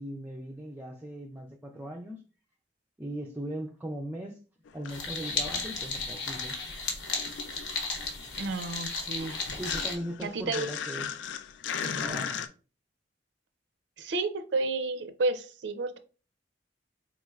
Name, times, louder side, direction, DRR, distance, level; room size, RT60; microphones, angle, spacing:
voice 1, 0.0-2.2 3.0-4.4 4.7-6.6 9.6-11.1 11.8-12.4, right 1 dB, 10° right, 0.3 m, -39 dB
sound 1, 4.7-6.6 6.8-12.5, left 7 dB, 90° left, 0.3 m, -38 dB
sound 2, 4.9-9.9, left 3 dB, 75° left, 0.9 m, -34 dB
voice 2, 8.4-9.4 10.2-10.7 14.0-16.0, right 3 dB, 80° right, 0.5 m, -31 dB
3.9 x 3.1 x 2.3 m
head